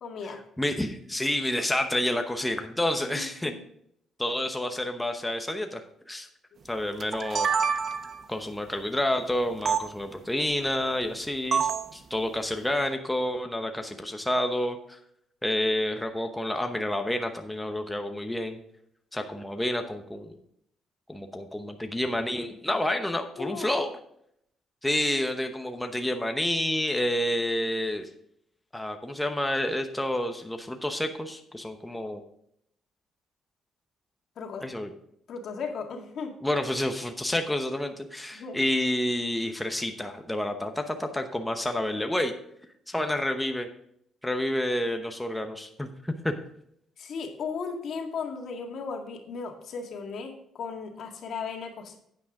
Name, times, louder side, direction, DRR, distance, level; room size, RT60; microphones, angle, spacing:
voice 1, 0.0-0.4 3.0-3.6 23.4-23.7 34.4-34.7 35.3-36.3 38.3-38.6 47.0-52.0, left 5 dB, 65° left, 3 dB, 1.9 m, -36 dB
voice 2, 0.6-3.5 4.2-5.8 6.1-6.3 6.7-7.5 8.3-15.0 15.4-18.6 19.1-20.4 21.1-23.9 24.8-28.1 28.7-32.2 34.6-34.9 36.4-42.3 42.9-43.7 44.2-46.3, left 1 dB, 10° left, 5 dB, 0.9 m, -29 dB
sound 1, 7.0-8.2 9.7-9.8 11.5-11.9, right 6 dB, 50° right, 0.8 m, -26 dB
9.4 x 8.9 x 3.7 m, 0.72 s
cardioid pair, 90°, 0 cm